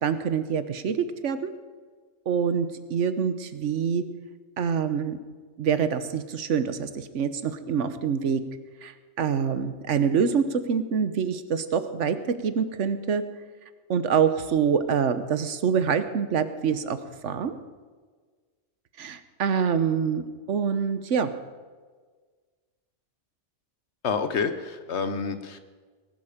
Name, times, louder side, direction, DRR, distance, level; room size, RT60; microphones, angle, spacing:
voice 1, 0.0-1.5 2.3-4.0 4.6-5.2 5.6-8.4 8.8-12.2 12.4-13.2 13.9-17.0 17.2-17.6 19.0-21.3, right 7 dB, 80° right, 11 dB, 1.3 m, -25 dB
voice 2, 24.0-25.6, left 5 dB, 65° left, 10 dB, 1.3 m, -28 dB
19.5 x 11.5 x 5.0 m, 1.5 s
omnidirectional pair, 1.2 m